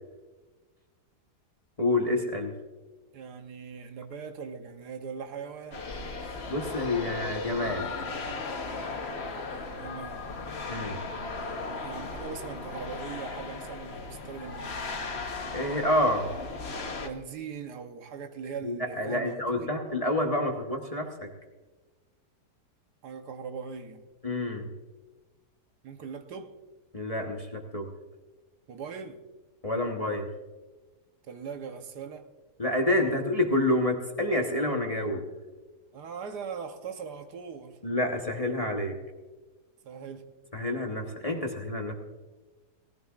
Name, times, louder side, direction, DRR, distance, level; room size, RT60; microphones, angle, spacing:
voice 1, 1.8-2.5 6.5-7.9 10.7-11.0 15.5-16.3 18.6-21.3 24.2-24.7 26.9-27.9 29.6-30.3 32.6-35.2 37.8-39.0 40.5-41.9, left 1 dB, 25° left, 1.1 m, -28 dB
voice 2, 3.1-5.9 9.7-10.3 11.8-15.1 17.0-19.8 23.0-24.0 25.8-26.5 28.7-29.2 31.2-32.3 35.9-37.8 39.8-40.3, right 6 dB, 75° right, 1.5 m, -40 dB
sound 1, 5.7-17.1, left 3 dB, 45° left, 1.3 m, -37 dB
19.0 x 15.0 x 2.5 m
omnidirectional pair, 1.8 m